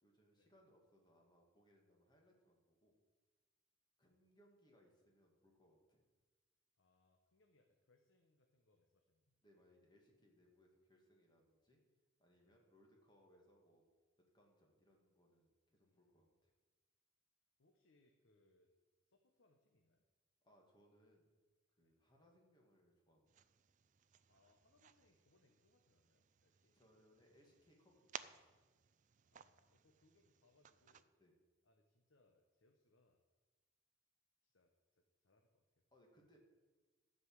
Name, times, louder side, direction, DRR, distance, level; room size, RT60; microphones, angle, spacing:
voice 1, 0.0-2.9 4.0-6.0 9.4-11.8 12.2-13.8 14.2-16.5 20.4-21.3 21.8-23.5 26.7-28.6 31.2-31.3 35.9-36.4, equal, 20° left, 0 dB, 2.2 m, -71 dB
voice 2, 6.8-9.4 12.4-12.6 15.8-16.3 17.6-18.7 19.0-20.0 21.8-22.0 24.3-26.8 29.3-31.2 31.6-33.2 34.4-35.8, left 2 dB, 70° left, 3 dB, 1.0 m, -77 dB
sound 1, 23.3-31.0, right 8 dB, 40° right, 0.4 m, -59 dB
13.0 x 5.4 x 7.9 m, 1.3 s
head